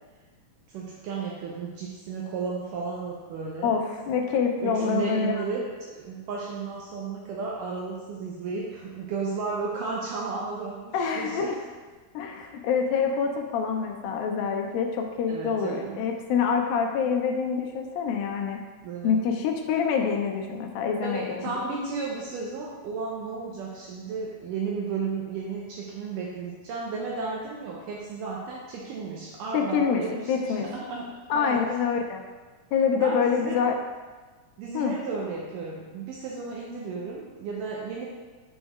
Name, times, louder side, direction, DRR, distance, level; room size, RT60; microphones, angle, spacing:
voice 1, 0.7-3.8 4.6-11.5 15.3-16.0 18.8-19.2 21.0-31.1 31.3-31.6 32.9-33.7 34.6-38.1, right 4 dB, 90° right, -3 dB, 1.9 m, -33 dB
voice 2, 3.6-5.5 10.9-11.6 12.1-18.6 19.0-21.5 29.5-30.7 31.3-32.2 32.7-33.8 34.7-34.9, left 6 dB, 80° left, 3 dB, 2.2 m, -26 dB
7.1 x 6.2 x 2.3 m, 1.3 s
omnidirectional pair, 4.5 m